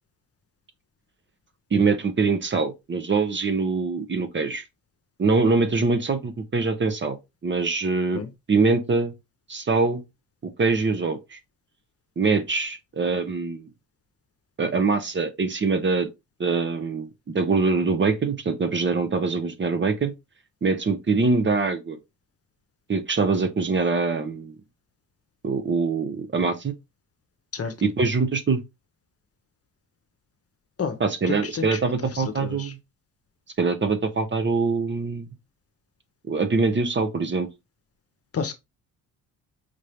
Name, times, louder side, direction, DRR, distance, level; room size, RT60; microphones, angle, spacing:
voice 1, 1.7-4.6 5.2-7.2 7.4-8.2 8.5-9.1 9.5-10.0 10.4-11.4 12.2-13.7 14.6-16.1 16.4-20.1 20.6-22.0 22.9-24.5 25.4-26.7 27.8-28.6 31.0-32.8 33.6-35.4 36.3-37.5, right 4 dB, 30° right, 0.9 m, -23 dB
voice 2, 31.3-32.7 38.3-38.5, left 6 dB, 40° left, 1.0 m, -30 dB
5.1 x 2.7 x 3.4 m
supercardioid pair, 75°, 37 cm